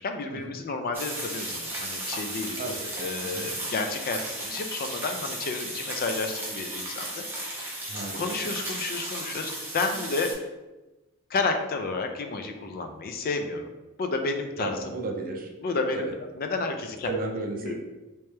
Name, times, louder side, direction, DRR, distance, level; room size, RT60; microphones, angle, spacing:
voice 1, 0.0-7.7 8.1-10.3 11.3-13.6 14.0-14.9 15.6-16.1 16.4-17.1 17.6-17.7, left 3 dB, 45° left, 5 dB, 0.4 m, -31 dB
sound 1, 0.9-10.3, right 1 dB, 10° right, 0.8 m, -35 dB
voice 2, 2.6-3.5 7.9-8.3 14.6-15.5 15.9-16.1 17.0-17.7, right 2 dB, 40° right, 3 dB, 0.5 m, -34 dB
3.3 x 3.0 x 3.2 m, 1.1 s
head